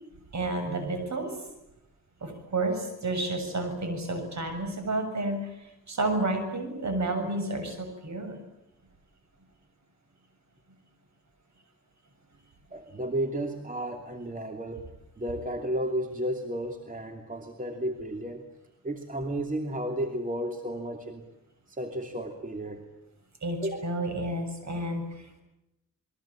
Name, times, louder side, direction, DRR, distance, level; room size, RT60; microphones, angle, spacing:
voice 1, 0.3-1.4 2.2-8.4 23.4-25.4, right 2 dB, 55° right, 7 dB, 7.4 m, -31 dB
voice 2, 12.7-18.4 18.8-21.3 21.7-22.8 23.6-23.8, right 1 dB, 25° right, 5 dB, 2.8 m, -33 dB
28.0 x 21.5 x 8.8 m, 0.89 s
cardioid pair, 85°, 34 cm